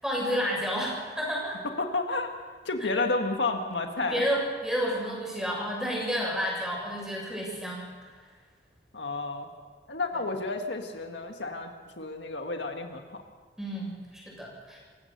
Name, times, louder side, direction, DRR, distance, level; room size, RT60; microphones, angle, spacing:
voice 1, 0.0-1.6 4.0-7.8 13.6-14.8, equal, 5° right, -3 dB, 7.2 m, -30 dB
voice 2, 1.6-4.2 8.9-9.5 9.9-13.2, left 3 dB, 85° left, 4 dB, 1.8 m, -31 dB
27.0 x 16.5 x 6.8 m, 1.5 s
head